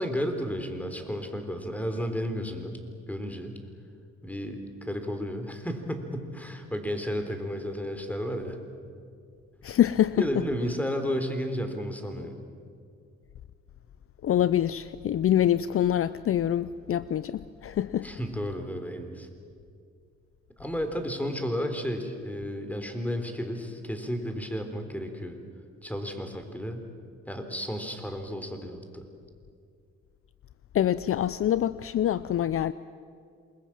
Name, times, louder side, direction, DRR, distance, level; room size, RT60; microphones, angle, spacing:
voice 1, 0.0-2.8 3.1-3.6 4.2-8.6 10.2-12.3 18.0-19.3 20.6-25.4 25.8-26.8 27.3-29.1, equal, 5° left, 6 dB, 3.7 m, -32 dB
voice 2, 9.6-10.4 14.2-18.1 30.7-32.7, left 11 dB, 50° left, 16 dB, 0.6 m, -25 dB
28.0 x 21.5 x 7.6 m, 2.3 s
cardioid pair, 80°, 29 cm